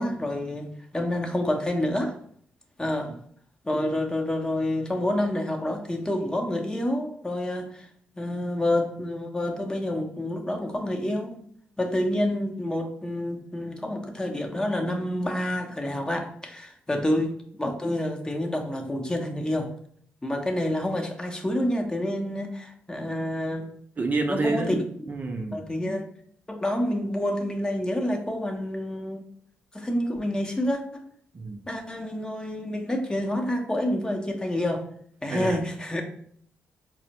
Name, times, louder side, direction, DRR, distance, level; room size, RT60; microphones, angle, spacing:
voice 1, 0.0-2.1 2.8-3.1 3.6-7.9 8.2-11.4 11.8-19.7 20.2-23.7 24.3-24.8 25.5-26.0 26.5-29.2 29.7-31.0 31.7-34.8 35.2-36.0, left 1 dB, 15° left, 2 dB, 0.7 m, -28 dB
voice 2, 24.0-24.7 25.1-25.6 31.3-31.6 35.3-35.6, right 3 dB, 40° right, 3 dB, 0.5 m, -29 dB
4.2 x 2.0 x 2.9 m, 0.62 s
supercardioid pair, 60°, 5 cm